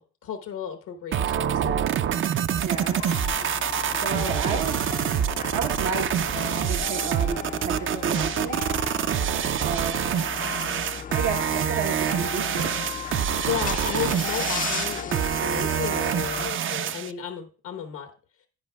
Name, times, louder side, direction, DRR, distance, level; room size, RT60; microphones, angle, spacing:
voice 1, 0.0-1.9 4.4-4.7 13.4-18.1, left 9 dB, 85° left, 6 dB, 1.1 m, -34 dB
sound 1, 1.1-17.1, right 9 dB, 45° right, 0.4 m, -26 dB
voice 2, 2.6-3.0 3.3-3.5 4.0-4.8 5.5-6.1 6.6-8.6 9.6-10.0 11.1-12.7, right 6 dB, 80° right, 2 dB, 1.0 m, -31 dB
sound 2, 2.7-16.5, left 7 dB, 30° left, 0.4 m, -35 dB
10.5 x 9.0 x 2.3 m, 0.37 s
cardioid pair, 90°, 30 cm